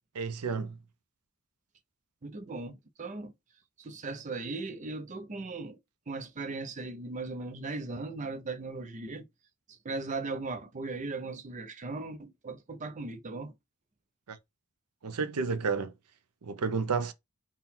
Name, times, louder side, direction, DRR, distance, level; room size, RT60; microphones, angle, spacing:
voice 1, 0.1-0.8 14.3-14.4 15.0-15.9 16.4-17.1, right 5 dB, 90° right, 0.6 m, -31 dB
voice 2, 2.2-3.3 3.8-5.8 6.1-9.3 9.7-13.5, right 3 dB, 35° right, 0.5 m, -38 dB
3.8 x 2.2 x 4.3 m
head